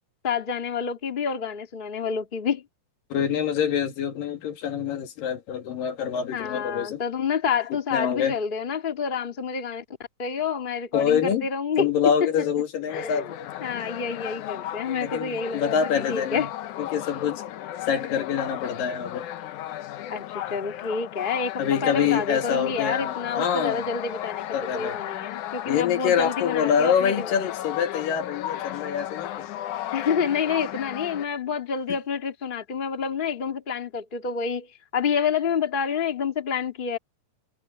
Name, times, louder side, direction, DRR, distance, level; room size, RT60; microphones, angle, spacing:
voice 1, 0.2-2.6 6.3-9.8 10.2-11.9 12.2-12.3 12.9-13.2 13.6-16.5 20.1-24.5 24.7-27.3 29.9-34.7 34.9-37.0, left 6 dB, 20° left, 1.6 m, -28 dB
voice 2, 3.1-7.0 7.9-8.4 10.9-11.5 11.8-13.3 15.0-16.5 16.8-17.4 17.9-19.3 21.6-23.8 24.5-25.0 25.7-29.5, left 8 dB, 90° left, 3.8 m, -25 dB
sound 1, 12.9-31.3, left 12 dB, 70° left, 2.3 m, -35 dB
omnidirectional pair, 3.8 m